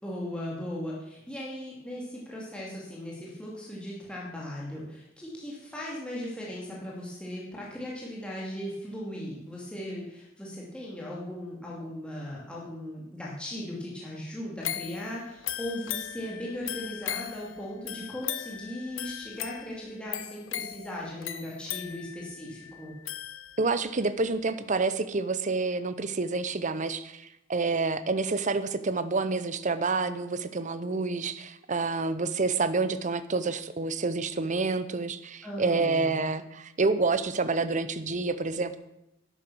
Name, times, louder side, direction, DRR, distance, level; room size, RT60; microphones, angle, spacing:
voice 1, 0.0-22.9 35.4-36.1, left 1 dB, 5° left, -5 dB, 2.5 m, -38 dB
sound 1, 14.6-23.9 24.3-24.4, left 11 dB, 60° left, 0.9 m, -38 dB
voice 2, 23.6-38.8, right 3 dB, 35° right, 13 dB, 0.7 m, -28 dB
11.5 x 9.1 x 6.2 m, 0.88 s
head